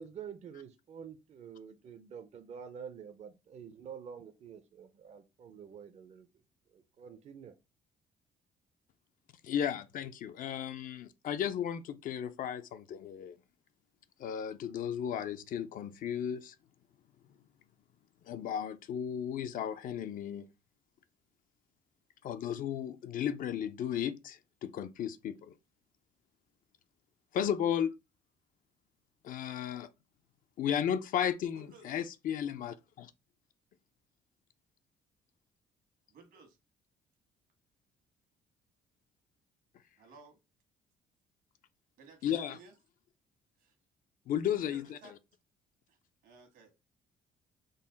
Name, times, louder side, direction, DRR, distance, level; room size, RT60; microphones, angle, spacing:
voice 1, 0.0-6.4 6.7-7.5, right 7 dB, 45° right, 0.5 m, -48 dB
voice 2, 9.4-13.4 14.2-16.5 18.3-20.4 22.2-25.5 27.3-27.9 29.2-29.9 30.6-33.1 42.2-42.6 44.3-45.0, left 9 dB, 60° left, 0.5 m, -34 dB
voice 3, 31.5-32.1 36.1-36.6 40.0-40.4 42.0-42.7 43.6-43.7 44.5-45.1 45.9-46.9, right 4 dB, 75° right, 1.4 m, -56 dB
3.9 x 2.1 x 3.8 m
cardioid pair, 95°, 16 cm